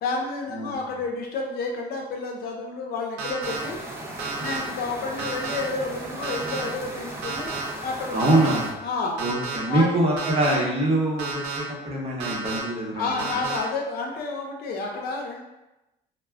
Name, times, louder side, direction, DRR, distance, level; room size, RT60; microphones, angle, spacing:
voice 1, 0.0-3.8 4.4-7.5 7.8-8.5 8.8-9.2 9.6-10.0 12.9-15.4, left 3 dB, 65° left, 1 dB, 0.6 m, -30 dB
sound 1, 3.2-3.6 4.2-4.6 5.2-5.6 6.2-6.6 7.2-7.6 8.2-8.6 9.2-9.6 10.2-10.5 11.2-11.6 12.2-12.6 13.2-13.6, right 5 dB, 90° right, 0.6 m, -31 dB
sound 2, 3.4-8.7, right 1 dB, 15° right, 0.5 m, -37 dB
voice 2, 8.1-8.8 9.2-13.2, right 1 dB, 35° right, -3 dB, 0.8 m, -24 dB
2.2 x 2.1 x 3.4 m, 0.97 s
cardioid pair, 110°, 17 cm